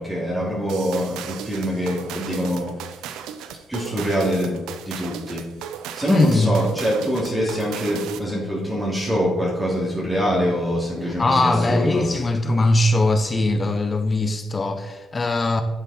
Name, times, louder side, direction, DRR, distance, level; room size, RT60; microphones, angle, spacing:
voice 1, 0.0-2.9 3.7-5.4 5.9-12.1, equal, 10° right, 3.0 m, -24 dB
sound 1, 0.7-8.4, right 8 dB, 90° right, 0.7 m, -35 dB
voice 2, 6.1-6.6 11.0-15.6, left 2 dB, 25° left, 0.9 m, -20 dB
11.0 x 7.0 x 4.4 m
cardioid pair, 110°, 0 cm